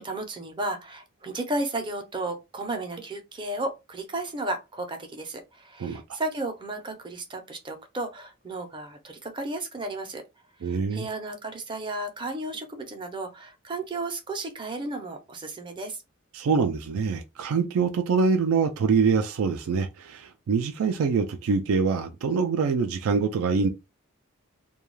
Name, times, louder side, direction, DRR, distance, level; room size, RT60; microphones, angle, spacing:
voice 1, 0.0-10.2 10.6-16.0, right 2 dB, 25° right, 0.5 m, -33 dB
voice 2, 10.6-11.1 16.3-23.7, right 5 dB, 80° right, 0.4 m, -24 dB
2.3 x 2.2 x 3.1 m
head